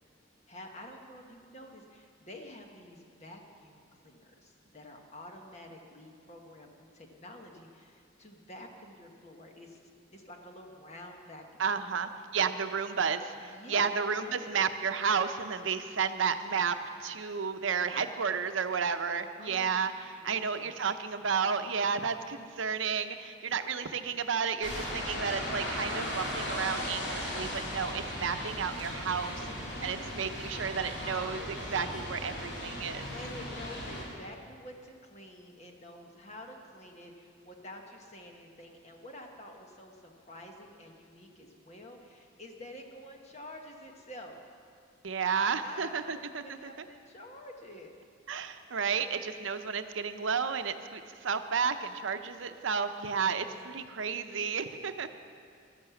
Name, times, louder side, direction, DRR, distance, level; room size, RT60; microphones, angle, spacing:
voice 1, 0.5-9.8 10.1-12.0 13.4-14.0 14.3-14.6 19.4-19.8 20.2-20.7 29.4-30.3 33.1-44.4 45.6-47.9 53.1-54.1, left 1 dB, 35° left, 2 dB, 1.3 m, -49 dB
voice 2, 11.6-29.3 29.8-33.1 45.0-46.6 48.3-55.1, right 6 dB, 75° right, 9 dB, 0.7 m, -32 dB
sound 1, 24.6-34.0, left 1 dB, 60° left, 3.1 m, -37 dB
12.0 x 10.5 x 7.1 m, 2.2 s
head